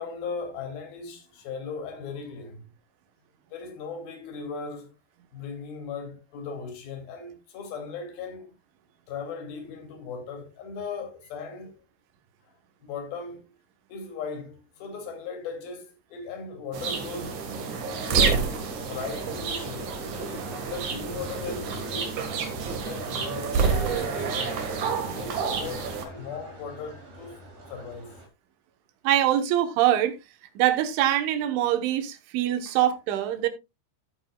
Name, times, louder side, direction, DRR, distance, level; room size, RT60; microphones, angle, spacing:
voice 1, 0.0-2.6 3.5-4.9 5.3-8.5 9.1-11.7 12.8-13.5 13.9-17.5 18.0-18.5 18.9-19.9 20.2-22.1 22.8-24.6 25.1-27.4 27.7-28.1 32.7-32.8, left 5 dB, 55° left, 4.1 m, -38 dB
sound 1, 16.7-26.1, right 5 dB, 55° right, 2.4 m, -29 dB
sound 2, 17.2-28.3, right 1 dB, 70° right, 6.3 m, -44 dB
voice 2, 29.1-30.2 30.6-33.5, right 12 dB, 85° right, 3.6 m, -23 dB
13.5 x 8.7 x 2.3 m
omnidirectional pair, 5.3 m